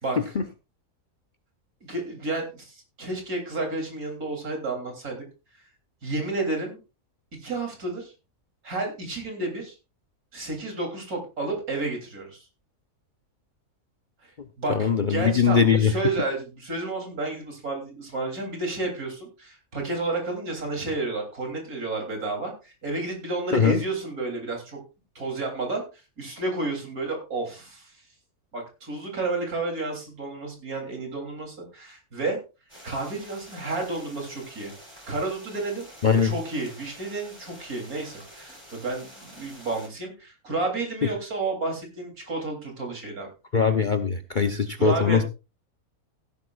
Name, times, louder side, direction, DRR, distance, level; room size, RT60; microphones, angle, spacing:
voice 1, 0.0-0.4 1.8-5.2 6.0-6.8 7.4-8.1 8.6-9.8 10.3-12.5 14.2-14.3 14.6-24.8 25.2-25.8 26.2-28.0 28.5-32.4 32.8-34.7 35.1-35.9 36.2-43.3 44.8-45.2, right 2 dB, 70° right, 2 dB, 3.8 m, -31 dB
voice 2, 14.7-15.9 23.5-23.8 36.0-36.3 43.5-45.2, left 6 dB, 45° left, 8 dB, 0.7 m, -21 dB
sound 1, 32.7-39.9, equal, 20° right, 4.4 m, -48 dB
16.0 x 10.5 x 2.5 m, 0.30 s
omnidirectional pair, 1.6 m